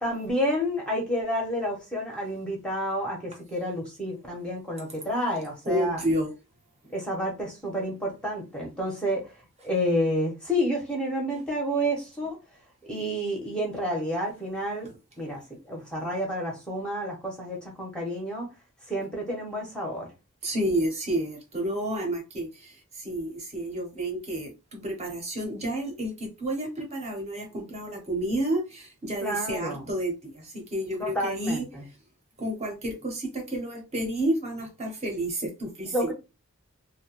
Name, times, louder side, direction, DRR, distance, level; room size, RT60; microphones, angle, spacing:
voice 1, 0.0-6.0 6.9-9.2 9.6-12.4 12.9-14.9 15.2-18.5 18.9-20.1 29.2-29.9 31.0-31.8 35.9-36.1, equal, 5° left, 0.7 m, -29 dB
voice 2, 5.6-6.3 20.4-31.7 32.4-36.1, right 1 dB, 30° right, 0.7 m, -30 dB
2.7 x 2.2 x 2.9 m
head